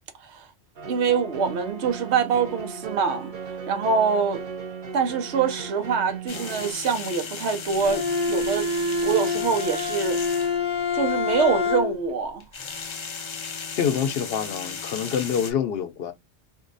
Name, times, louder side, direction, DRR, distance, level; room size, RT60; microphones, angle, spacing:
sound 1, 0.8-6.7, right 5 dB, 50° right, 0.8 m, -37 dB
voice 1, 0.9-4.4 4.9-8.7 9.0-10.6 10.9-12.4, right 6 dB, 80° right, 1.0 m, -25 dB
sound 2, 6.3-10.6 12.4-15.5, left 5 dB, 50° left, 0.3 m, -36 dB
Bowed string instrument, 7.8-12.2, left 4 dB, 5° right, 0.8 m, -26 dB
voice 2, 13.8-16.1, left 8 dB, 65° left, 0.8 m, -26 dB
2.7 x 2.2 x 3.9 m
omnidirectional pair, 1.1 m